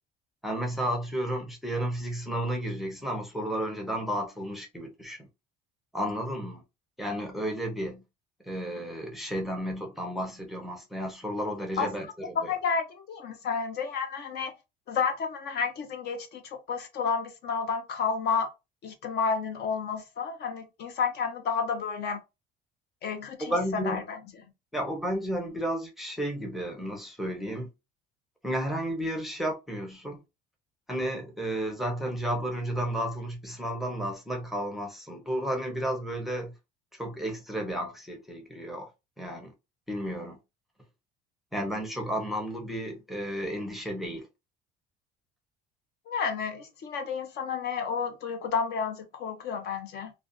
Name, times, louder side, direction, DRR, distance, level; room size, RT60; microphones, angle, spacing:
voice 1, 0.4-5.3 5.9-6.6 7.0-8.0 8.4-12.5 23.4-24.0 24.7-27.7 28.4-30.2 30.9-36.5 36.9-38.9 39.2-39.5 39.9-40.4 41.5-44.3, equal, ahead, 0.6 m, -32 dB
voice 2, 12.2-14.6 14.9-18.5 18.8-22.2 23.0-24.2 46.1-50.1, left 5 dB, 55° left, 0.6 m, -31 dB
2.4 x 2.1 x 2.5 m
cardioid pair, 140°, 20 cm